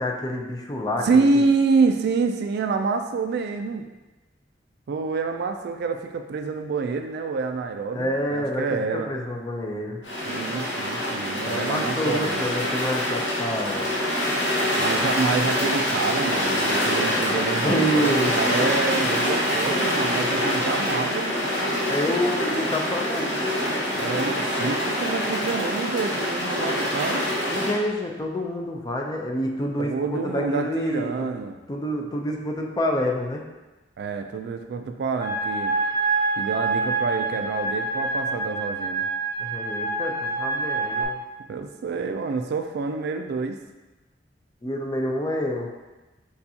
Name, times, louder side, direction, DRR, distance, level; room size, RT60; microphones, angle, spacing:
voice 1, 0.0-1.2 7.9-10.0 11.4-13.9 17.3-18.4 21.9-23.5 27.5-31.3 31.7-33.4 39.4-41.1 44.6-45.7, left 1 dB, 20° left, 1 dB, 0.5 m, -28 dB
voice 2, 1.0-3.8 4.9-9.1 10.3-12.5 14.8-21.4 23.9-27.3 29.8-31.6 34.0-35.7 36.4-39.1 41.5-43.6, right 4 dB, 60° right, 6 dB, 0.3 m, -27 dB
sound 1, 10.0-27.7, equal, 75° left, 1.3 m, -25 dB
sound 2, 35.2-41.0, right 3 dB, 25° right, 0.7 m, -26 dB
6.7 x 2.4 x 2.7 m, 1.1 s
head